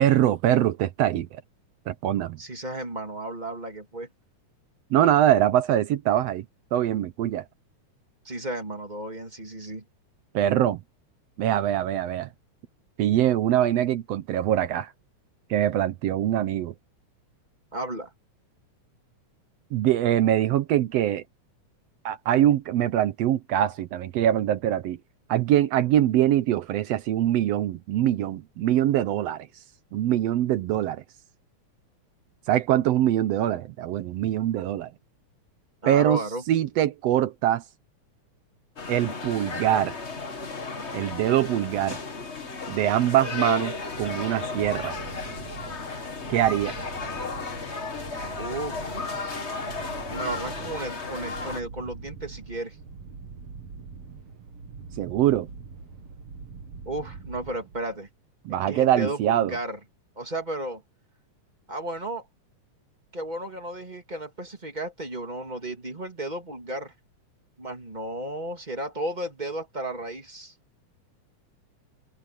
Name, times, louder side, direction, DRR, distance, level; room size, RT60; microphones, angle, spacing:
voice 1, 0.0-1.4 1.9-2.4 4.9-6.4 6.7-7.4 10.3-10.8 11.4-12.3 13.0-14.9 15.5-16.7 19.7-21.2 22.0-25.0 25.3-29.5 29.9-31.0 32.5-34.9 35.9-37.6 38.9-39.9 40.9-42.0 42.7-44.9 46.3-46.8 55.0-55.5 58.4-59.5, right 12 dB, 75° right, 1.6 m, -23 dB
voice 2, 2.4-4.1 8.2-9.8 17.7-18.1 35.8-36.4 48.4-49.0 50.1-52.8 56.8-58.1 58.7-59.8 60.2-60.8 61.7-62.2 63.1-66.9 67.6-70.5, right 1 dB, 15° right, 2.7 m, -33 dB
sound 1, 38.8-51.6, left 4 dB, 30° left, 1.5 m, -34 dB
sound 2, 43.8-58.1, right 5 dB, 55° right, 2.9 m, -43 dB
omnidirectional pair, 3.5 m